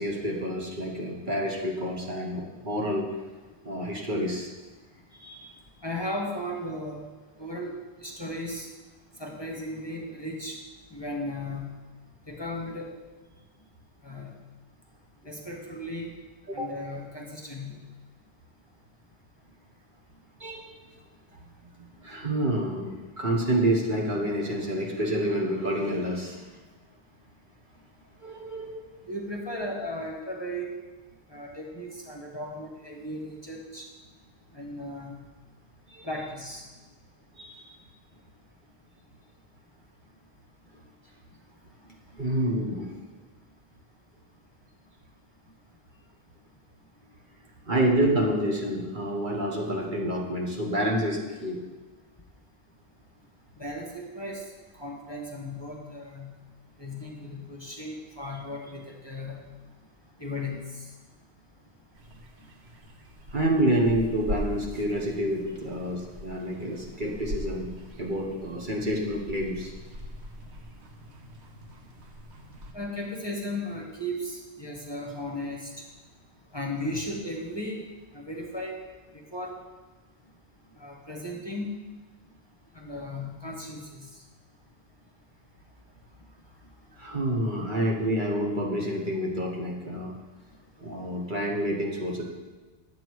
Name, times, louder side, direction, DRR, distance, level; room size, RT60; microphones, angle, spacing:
voice 1, 0.0-3.1 3.6-4.5 5.2-5.5 16.5-16.7 20.4-20.7 21.4-26.5 28.2-28.8 35.9-36.1 37.4-37.7 42.2-43.0 47.7-51.6 63.3-67.7 68.0-69.7 86.9-90.1 90.8-92.2, right 1 dB, 45° right, -1 dB, 1.4 m, -28 dB
voice 2, 5.8-7.0 7.4-7.7 8.0-8.7 9.2-10.6 10.9-11.8 12.3-12.9 14.0-14.4 15.2-16.1 16.5-17.8 29.1-30.8 31.3-33.9 34.5-35.2 36.0-36.7 41.8-41.9 53.6-54.4 54.7-56.3 56.8-59.5 60.2-60.9 65.6-65.7 72.7-75.7 76.5-77.9 78.1-78.8 79.1-79.6 80.8-81.7 82.7-84.2, left 1 dB, 25° left, -1 dB, 1.2 m, -36 dB
sound 1, 61.9-72.7, left 1 dB, 75° right, 1.3 m, -41 dB
10.0 x 7.6 x 4.6 m, 1.2 s
omnidirectional pair, 1.1 m